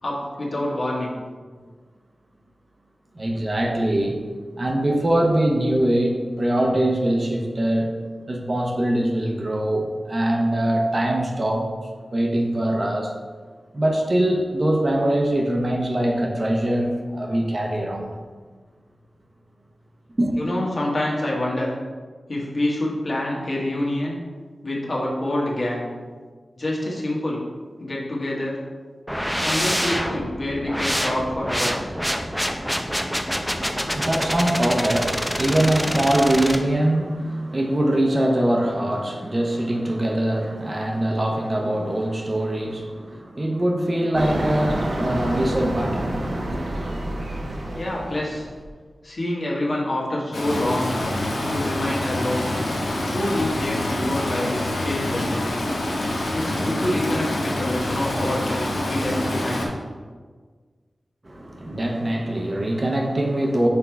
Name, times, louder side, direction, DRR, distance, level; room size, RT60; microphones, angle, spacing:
voice 1, 0.0-1.2 20.4-21.7 22.3-24.2 24.6-25.9 26.5-27.4 27.8-28.6 29.4-31.9 47.7-48.5 49.0-50.9 51.5-52.4 53.1-55.4 56.3-59.7, left 1 dB, 55° left, -4 dB, 1.5 m, -27 dB
voice 2, 3.2-4.2 4.6-7.9 8.3-11.7 12.1-13.1 13.7-18.1 20.2-20.3 33.3-46.2 46.5-46.6 61.2-63.7, right 1 dB, 35° right, 1 dB, 0.9 m, -23 dB
sound 1, 29.1-36.6, equal, ahead, 0.6 m, -26 dB
sound 2, 44.1-48.7, right 1 dB, 70° right, 1.0 m, -28 dB
Stream, 50.3-59.7, left 1 dB, 90° left, 1.1 m, -26 dB
6.0 x 3.8 x 4.6 m, 1.5 s
wide cardioid pair, 65°, 0 cm